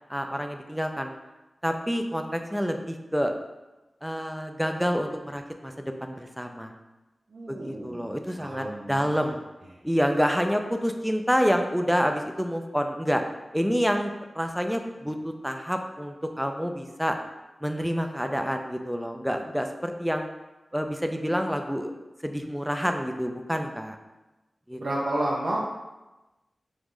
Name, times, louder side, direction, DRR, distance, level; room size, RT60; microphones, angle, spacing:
voice 1, 0.1-1.1 1.6-3.3 4.0-6.7 7.5-9.4 9.8-13.2 13.5-17.2 17.6-20.3 20.7-21.9 22.2-24.0 24.7-24.8, equal, ahead, 5 dB, 0.4 m, -28 dB
voice 2, 7.3-9.3 24.8-25.7, right 1 dB, 70° right, -4 dB, 0.4 m, -31 dB
3.1 x 2.5 x 3.6 m, 1.1 s
cardioid pair, 45°, 0 cm